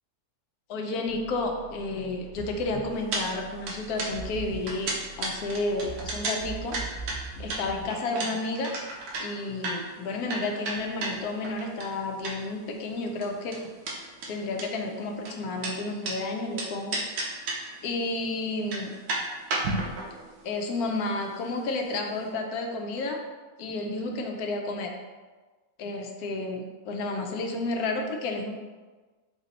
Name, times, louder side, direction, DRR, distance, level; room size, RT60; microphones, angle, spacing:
voice 1, 0.7-6.8 7.2-8.7 9.2-13.6 14.3-17.0 17.8-18.9 20.4-23.2 23.6-24.9 25.8-28.5, left 2 dB, 75° left, 3 dB, 1.1 m, -31 dB
sound 1, 1.1-7.9, right 3 dB, 60° left, 0.9 m, -42 dB
sound 2, 3.1-3.3 3.5-12.6 12.9-16.2 16.6-17.8 18.1-18.2 18.5-21.9 22.2-22.3, right 2 dB, 90° right, 1.3 m, -33 dB
4.2 x 2.7 x 4.0 m, 1.3 s
omnidirectional pair, 1.6 m